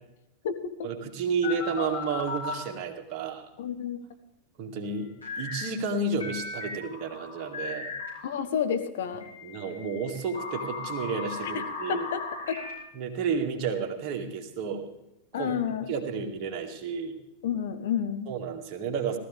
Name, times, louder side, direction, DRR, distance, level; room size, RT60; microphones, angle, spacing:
voice 1, 0.8-3.5 4.6-7.9 9.4-12.1 12.9-14.9 15.3-15.5 15.9-17.2 18.3-19.2, right 5 dB, 40° right, 3 dB, 2.0 m, -31 dB
sound 1, 1.4-2.6 5.2-5.7 6.2-8.3 9.2-12.7, left 4 dB, 80° left, 6.3 m, -36 dB
voice 2, 3.6-4.0 8.2-9.3 11.4-12.6 15.3-15.9 17.4-18.3, left 8 dB, 55° left, 7 dB, 1.3 m, -30 dB
18.0 x 14.0 x 3.4 m, 0.86 s
figure-of-eight pair, 90°, 0 cm